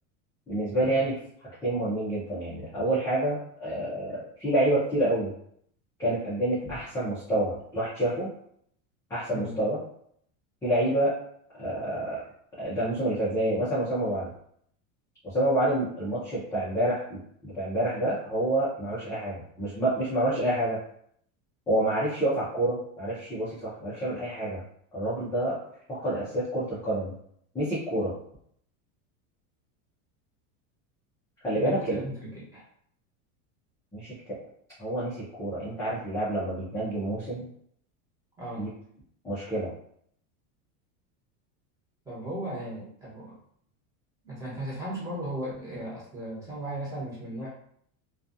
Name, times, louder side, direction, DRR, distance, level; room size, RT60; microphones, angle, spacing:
voice 1, 0.5-1.2 1.6-5.3 6.0-8.3 9.1-9.8 10.6-11.1 11.6-12.2 12.6-14.3 15.2-20.8 21.7-24.6 24.9-25.6 25.9-27.1 27.5-28.1 31.4-32.0 33.9-34.2 34.8-37.5 38.6-38.7 39.2-39.7, right 1 dB, 10° left, -10 dB, 0.4 m, -28 dB
voice 2, 31.5-32.7 38.4-38.7 42.0-43.4 44.2-47.5, right 1 dB, 10° right, -8 dB, 1.0 m, -36 dB
2.3 x 2.3 x 2.6 m, 0.66 s
supercardioid pair, 155°, 42 cm